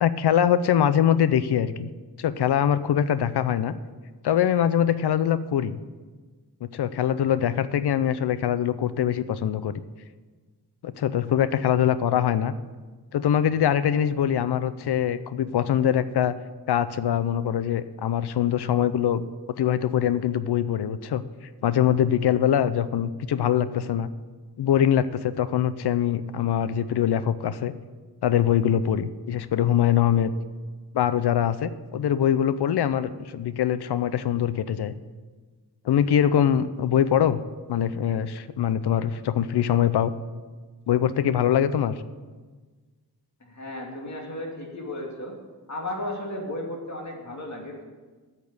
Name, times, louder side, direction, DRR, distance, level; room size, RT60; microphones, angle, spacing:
voice 1, 0.0-1.9 2.2-3.8 4.2-5.8 6.7-9.7 10.8-12.5 13.1-16.3 16.7-19.3 19.6-21.2 21.6-24.1 24.6-27.7 28.2-30.3 30.9-34.9 35.8-37.4 37.7-40.1 40.9-41.9, left 9 dB, 85° left, 14 dB, 0.5 m, -23 dB
voice 2, 43.4-45.3 45.7-47.8, left 1 dB, 45° left, -1 dB, 2.5 m, -34 dB
8.4 x 6.7 x 8.0 m, 1.4 s
wide cardioid pair, 85°, 39 cm